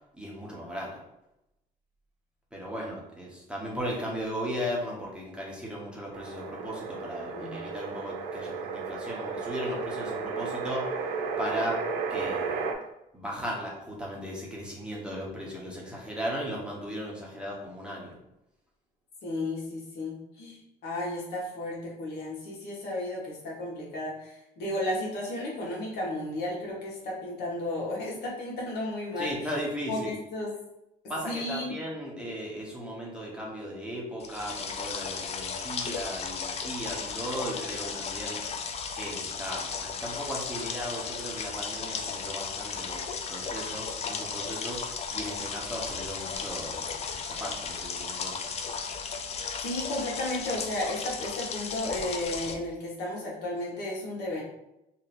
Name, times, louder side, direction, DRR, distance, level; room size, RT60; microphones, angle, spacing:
voice 1, 0.1-1.0 2.5-11.1 11.4-12.5 13.1-18.2 29.2-30.2 31.1-38.6 39.0-47.0 47.3-48.4, equal, 5° right, -4 dB, 1.0 m, -36 dB
sound 1, 6.1-12.7, right 5 dB, 85° right, 0.6 m, -33 dB
voice 2, 19.2-29.3 29.9-30.5 31.2-31.8 49.6-54.4, left 1 dB, 75° left, -3 dB, 1.3 m, -33 dB
sound 2, 34.2-52.5, left 5 dB, 40° left, 0.4 m, -35 dB
2.9 x 2.6 x 4.1 m, 0.87 s
cardioid pair, 110°, 17 cm